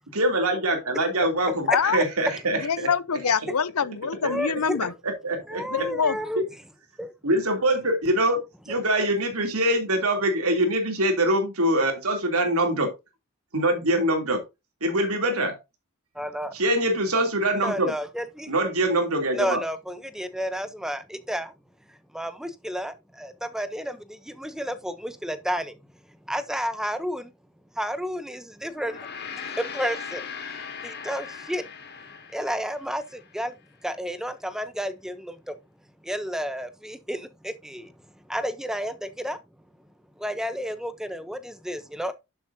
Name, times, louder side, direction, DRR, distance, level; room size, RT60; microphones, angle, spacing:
voice 1, 0.1-2.9 4.2-4.3 5.0-5.9 6.4-6.5 7.2-8.4 8.7-12.9 13.5-14.4 14.8-15.6 16.5-17.9 18.5-19.6, right 1 dB, 80° right, 3.1 m, -24 dB
voice 2, 1.7-2.0 2.5-4.9 5.7-6.2, left 6 dB, 80° left, 0.7 m, -25 dB
voice 3, 4.2-4.8 5.5-6.4 7.0-7.1 16.1-16.5 17.6-18.5 19.4-21.5 21.9-25.8 26.3-27.3 27.8-29.1 29.4-30.2 30.8-31.7 32.3-33.6 33.8-35.6 36.0-37.9 38.3-39.4 40.2-42.1, equal, ahead, 0.8 m, -31 dB
Gong, 28.7-33.3, left 6 dB, 50° left, 2.2 m, -39 dB
11.0 x 7.3 x 2.7 m
head